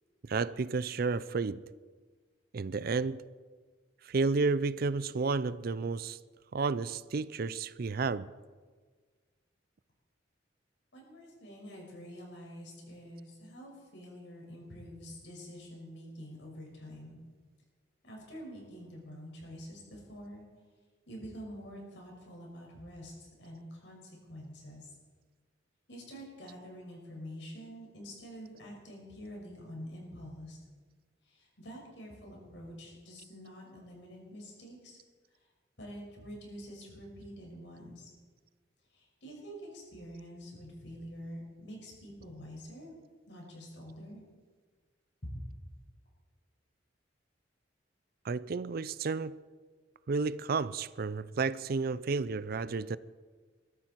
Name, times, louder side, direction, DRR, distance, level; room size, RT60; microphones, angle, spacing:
voice 1, 0.2-1.6 2.5-3.2 4.0-6.2 6.5-8.3 48.2-49.4 50.1-53.0, right 4 dB, 55° right, 0.5 m, -31 dB
voice 2, 10.9-17.2 18.0-20.5 21.1-23.1 23.4-24.0 24.3-24.9 25.9-30.6 31.2-35.0 35.8-38.1 38.9-42.9 43.3-44.2 45.2-45.4, equal, 75° left, 6.0 m, -47 dB
22.0 x 13.5 x 4.6 m
head